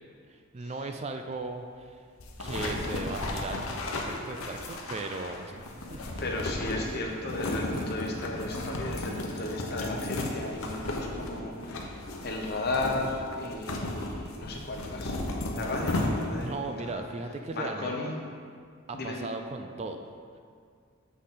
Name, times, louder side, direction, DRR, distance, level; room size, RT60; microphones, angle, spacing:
voice 1, 0.5-2.0 2.4-3.6 3.9-5.7 5.9-6.2 11.3-11.4 16.4-18.2 18.9-20.1, right 3 dB, 30° right, 6 dB, 0.3 m, -37 dB
sound 1, 2.2-16.5, left 2 dB, 90° left, 0.9 m, -34 dB
voice 2, 2.5-3.0 6.2-15.2 15.5-17.0 17.5-18.2 18.9-19.3, left 2 dB, 50° left, 0 dB, 1.0 m, -35 dB
7.4 x 6.5 x 3.8 m, 2.2 s
head